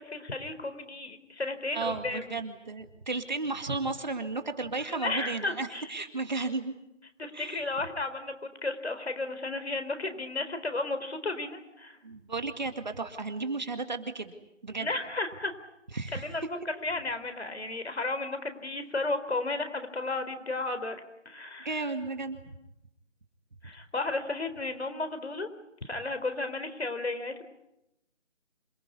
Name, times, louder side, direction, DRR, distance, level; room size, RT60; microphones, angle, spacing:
voice 1, 0.0-2.4 4.8-5.9 7.2-12.0 14.8-15.5 16.1-16.5 16.8-21.0 21.2-21.7 23.6-25.5 25.8-27.4, left 2 dB, 60° left, 9 dB, 4.4 m, -33 dB
voice 2, 1.7-6.7 7.3-7.7 12.0-14.3 14.6-14.9 15.9-16.3 21.6-22.5, right 3 dB, 35° right, 8 dB, 2.2 m, -34 dB
27.5 x 20.0 x 9.8 m, 0.87 s
figure-of-eight pair, 175°, 36 cm